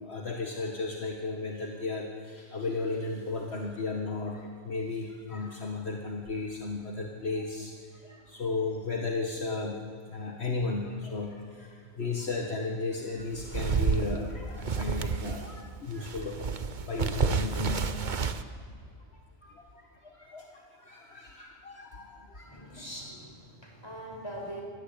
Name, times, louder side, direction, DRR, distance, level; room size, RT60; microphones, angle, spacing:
voice 1, 0.0-9.8 10.1-18.0 19.1-22.7, left 3 dB, 60° left, 1 dB, 2.1 m, -35 dB
sound 1, 13.2-15.6 15.9-18.4, right 5 dB, 45° right, 1.1 m, -30 dB
voice 2, 22.4-24.6, equal, 20° left, 0 dB, 6.0 m, -42 dB
26.0 x 19.0 x 8.9 m, 2.2 s
omnidirectional pair, 1.2 m